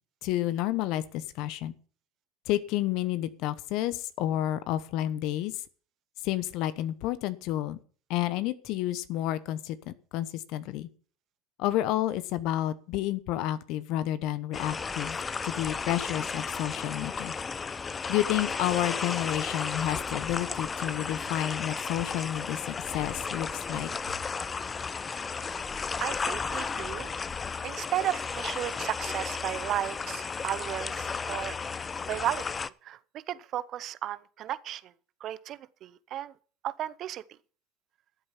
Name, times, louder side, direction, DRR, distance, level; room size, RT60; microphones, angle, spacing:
voice 1, 0.2-1.8 2.5-5.5 6.2-7.8 8.1-10.9 11.6-15.2 15.4-17.3 18.1-23.9, left 13 dB, 60° left, 1.0 m, -30 dB
sound 1, 14.5-32.7, left 5 dB, 25° left, 0.5 m, -34 dB
voice 2, 26.0-27.1 27.6-31.5 32.1-32.4 32.8-34.9 35.2-36.3 36.6-37.2, right 12 dB, 50° right, 0.8 m, -34 dB
13.0 x 7.7 x 5.7 m
hypercardioid pair, 90°, 0 cm